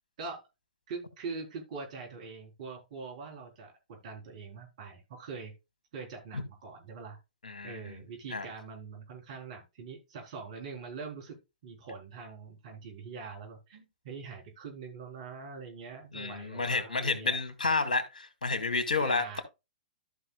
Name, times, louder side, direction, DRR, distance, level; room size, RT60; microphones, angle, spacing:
voice 1, 0.9-5.5 5.9-7.2 7.6-11.4 11.6-17.4 19.0-19.4, right 4 dB, 55° right, 4.0 m, -43 dB
voice 2, 7.4-8.0 8.3-8.5 16.1-19.4, left 3 dB, 75° left, 2.0 m, -30 dB
14.0 x 5.6 x 2.3 m
figure-of-eight pair, 115°, 4 cm